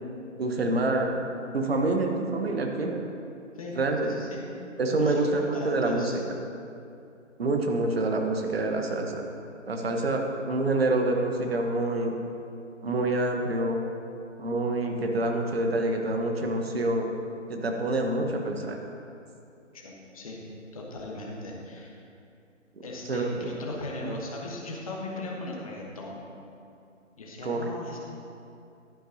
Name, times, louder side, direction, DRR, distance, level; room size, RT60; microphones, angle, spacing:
voice 1, 0.4-1.2 1.5-3.0 3.7-4.1 4.8-6.2 7.4-9.2 9.7-12.2 12.8-13.8 14.4-17.1 17.5-18.8 23.1-23.3 24.0-24.2 27.4-27.7, right 2 dB, 50° right, 3 dB, 1.1 m, -27 dB
voice 2, 3.5-4.5 5.0-6.2 19.7-20.4 20.7-22.0 22.8-26.2 27.2-28.0, left 2 dB, 30° left, -2 dB, 1.1 m, -38 dB
11.5 x 9.8 x 2.8 m, 2.6 s
figure-of-eight pair, 150°, 38 cm